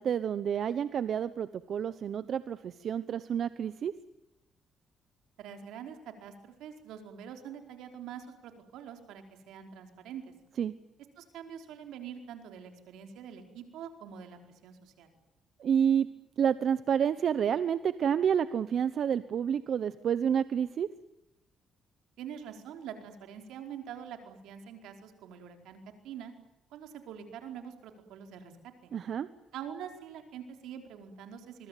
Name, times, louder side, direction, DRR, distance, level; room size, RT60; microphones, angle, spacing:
voice 1, 0.0-3.9 10.6-10.7 15.6-16.1 16.4-20.9 28.9-29.3, right 8 dB, 60° right, 14 dB, 1.0 m, -29 dB
voice 2, 5.4-10.3 11.2-15.1 22.2-26.3 26.7-28.9 29.5-31.7, right 8 dB, 90° right, 5 dB, 4.7 m, -45 dB
25.5 x 22.5 x 9.3 m, 0.90 s
cardioid pair, 90°, 0 cm